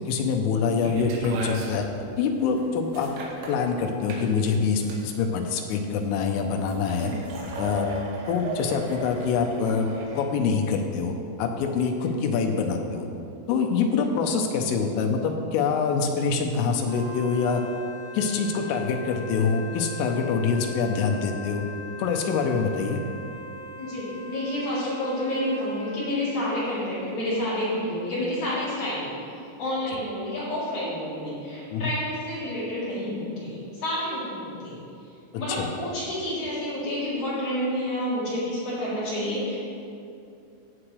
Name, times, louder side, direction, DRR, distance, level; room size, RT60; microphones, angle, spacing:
voice 1, 0.1-1.9 2.2-3.1 3.5-7.1 7.6-7.9 8.3-9.9 10.2-13.1 13.5-17.6 18.1-21.6 22.0-23.0 31.7-31.8 35.6-35.7, left 5 dB, 85° left, 3 dB, 3.3 m, -25 dB
sound 1, 0.8-10.2, right 2 dB, 80° right, 3.8 m, -36 dB
Wind instrument woodwind instrument, 16.8-26.1, left 1 dB, 65° left, 2.6 m, -41 dB
voice 2, 23.8-29.2 29.6-34.8 35.4-39.6, left 1 dB, 40° left, -10 dB, 4.0 m, -29 dB
16.0 x 8.8 x 3.3 m, 2.6 s
omnidirectional pair, 5.9 m